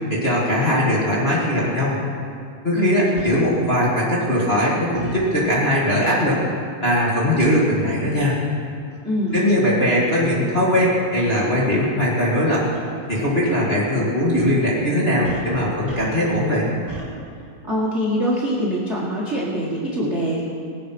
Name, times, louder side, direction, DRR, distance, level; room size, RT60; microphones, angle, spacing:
voice 1, 0.1-2.0 2.6-6.4 6.8-8.4 9.3-12.6 13.1-16.7, left 1 dB, 20° left, -7 dB, 1.9 m, -20 dB
sound 1, 1.6-1.7 3.2-3.3 4.9-5.2 7.0-7.2 8.0-8.1 8.9-9.0 9.3-9.4 10.7-10.9 12.2-12.4 12.7-12.8 14.3-14.6 15.2-16.4 16.9-17.1, right 1 dB, 5° right, 3.8 m, -38 dB
voice 2, 2.7-3.4 9.0-9.4 17.6-20.4, equal, 30° right, -5 dB, 1.4 m, -24 dB
20.0 x 8.5 x 6.0 m, 2.4 s
omnidirectional pair, 3.9 m